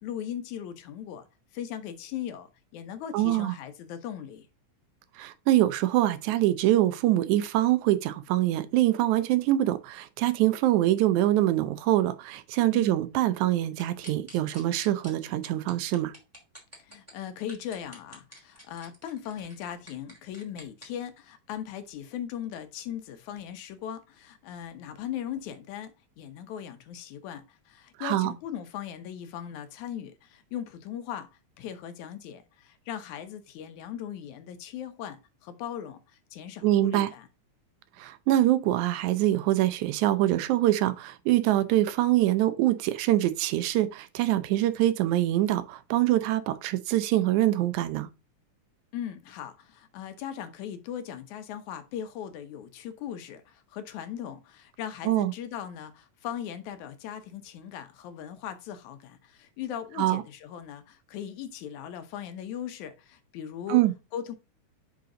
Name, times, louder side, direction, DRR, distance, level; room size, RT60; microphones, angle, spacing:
voice 1, 0.0-1.3 1.5-2.5 2.7-4.5 12.7-13.0 16.8-31.3 31.6-37.3 48.9-63.8 64.1-64.3, left 9 dB, 80° left, 2.2 m, -38 dB
voice 2, 3.1-3.5 5.2-16.1 28.0-28.3 36.6-37.1 38.0-48.1 55.1-55.3 60.0-60.2 63.7-63.9, right 14 dB, 80° right, 2.0 m, -24 dB
sound 1, 13.8-15.1 15.4-17.1 17.5-20.9, equal, 5° right, 1.9 m, -47 dB
5.7 x 5.2 x 3.7 m
omnidirectional pair, 3.4 m